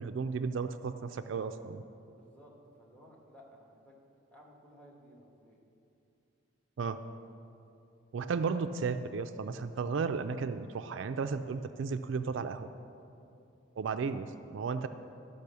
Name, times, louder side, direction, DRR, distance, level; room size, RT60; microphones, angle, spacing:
voice 1, 0.0-1.8 6.8-7.0 8.1-12.7 13.8-14.9, right 5 dB, 65° right, 9 dB, 0.4 m, -34 dB
voice 2, 2.1-4.0 4.3-5.6 8.5-8.6, equal, 5° left, -2 dB, 1.5 m, -57 dB
12.0 x 5.4 x 6.8 m, 2.7 s
head